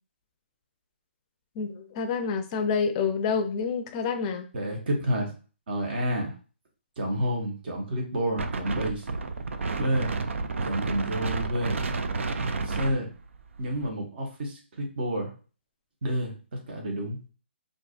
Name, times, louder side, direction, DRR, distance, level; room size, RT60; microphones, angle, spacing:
voice 1, 1.6-4.5, left 5 dB, 25° left, 7 dB, 0.5 m, -28 dB
voice 2, 4.5-5.3 5.7-6.3 7.0-9.0 9.8-10.1 10.6-11.8 12.6-13.1 13.6-15.3 16.0-16.3 16.7-17.2, equal, 50° right, 1 dB, 1.3 m, -29 dB
Wind, 8.4-13.9, right 3 dB, 80° right, 0.5 m, -31 dB
4.5 x 2.6 x 2.5 m, 0.36 s
hypercardioid pair, 155°, 7 cm